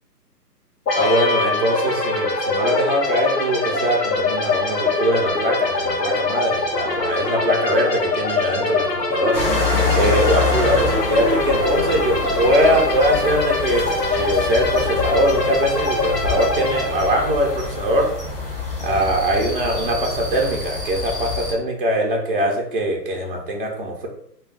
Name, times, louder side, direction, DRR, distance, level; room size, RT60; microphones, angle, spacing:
sound 1, 0.9-18.5, left 3 dB, 75° left, 0.9 m, -23 dB
voice 1, 0.9-9.5 9.9-18.1 18.8-24.1, right 1 dB, 35° right, -1 dB, 0.4 m, -22 dB
sound 2, 9.3-21.5, left 3 dB, 35° left, 0.5 m, -26 dB
2.3 x 2.2 x 3.3 m, 0.69 s
hypercardioid pair, 155°, 49 cm